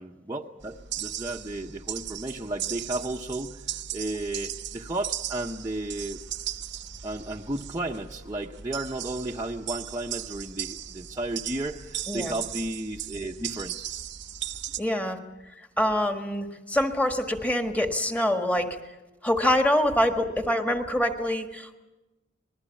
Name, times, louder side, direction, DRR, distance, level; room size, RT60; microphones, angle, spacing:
voice 1, 0.0-6.2 7.0-14.0, right 2 dB, 15° right, -2 dB, 0.8 m, -33 dB
sound 1, 0.6-14.8, right 10 dB, 60° right, 0.8 m, -37 dB
voice 2, 14.8-15.2 15.6-18.8 19.2-21.8, left 1 dB, 5° left, 5 dB, 1.6 m, -25 dB
26.5 x 20.0 x 7.2 m, 1.1 s
head